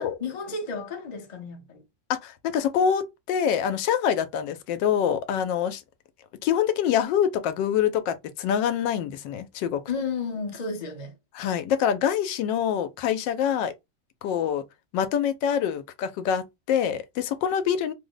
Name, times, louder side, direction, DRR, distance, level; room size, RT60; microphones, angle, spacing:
voice 1, 0.0-1.8 9.9-11.1, left 4 dB, 50° left, 0.5 m, -32 dB
voice 2, 2.1-5.8 6.4-9.8 11.3-13.7 14.2-14.6 14.9-17.9, left 8 dB, 80° left, 1.2 m, -25 dB
3.1 x 2.0 x 3.7 m
omnidirectional pair, 2.0 m